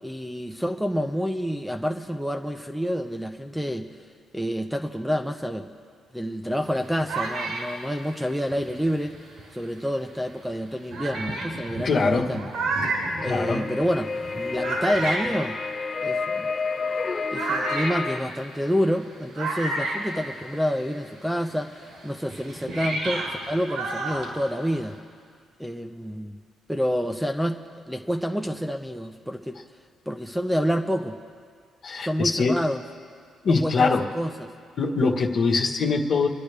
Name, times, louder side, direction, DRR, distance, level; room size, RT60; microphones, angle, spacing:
voice 1, 0.0-3.9 4.3-5.7 6.1-9.2 9.5-12.5 13.2-15.6 16.0-16.5 17.3-25.0 25.6-26.4 26.7-27.6 27.9-29.6 30.1-31.2 32.0-32.8 33.5-34.5, equal, ahead, 5 dB, 0.7 m, -28 dB
sound 1, 6.6-9.6 10.3-10.4 10.9-20.9 21.2-25.0, right 2 dB, 85° right, 3.9 m, -32 dB
voice 2, 11.8-12.3 13.2-13.7 31.8-32.6 33.4-34.0 34.8-36.3, left 4 dB, 55° left, 1 dB, 1.4 m, -23 dB
sound 2, 13.2-18.2, left 4 dB, 35° left, 0.4 m, -30 dB
28.0 x 10.5 x 3.4 m, 2.1 s
cardioid pair, 90°, 0 cm